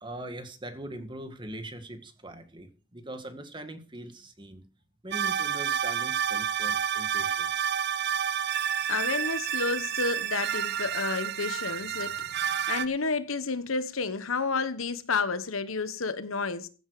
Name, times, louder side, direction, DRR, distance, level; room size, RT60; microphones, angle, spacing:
voice 1, 0.0-4.7 5.0-7.6 12.8-12.9, right 1 dB, 25° right, 2.0 m, -41 dB
sound 1, 5.1-12.9, right 8 dB, 50° right, 0.8 m, -29 dB
voice 2, 8.9-16.7, left 4 dB, 80° left, 1.2 m, -31 dB
15.5 x 9.2 x 4.9 m
head